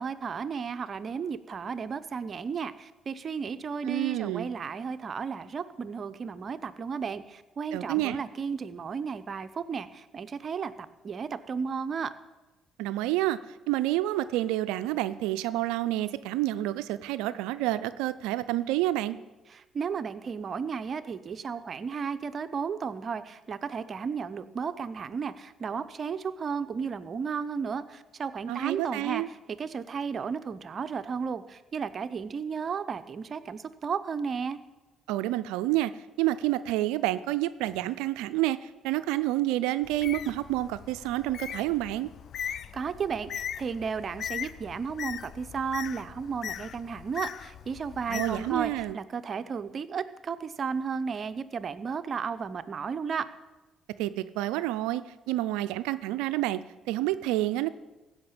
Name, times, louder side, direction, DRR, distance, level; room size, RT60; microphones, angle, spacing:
voice 1, 0.0-12.1 19.5-34.6 42.4-53.2, right 6 dB, 50° right, 12 dB, 0.8 m, -34 dB
voice 2, 3.8-4.5 7.7-8.2 12.8-13.4 13.7-19.2 28.5-29.3 35.1-35.9 36.2-42.1 48.1-49.0 54.0-55.0 55.3-56.6 56.9-57.7, right 15 dB, 85° right, 13 dB, 0.4 m, -28 dB
Bird, 39.8-48.9, left 9 dB, 60° left, 0.5 m, -39 dB
15.5 x 5.8 x 8.8 m, 1.1 s
supercardioid pair, 65°, 0 cm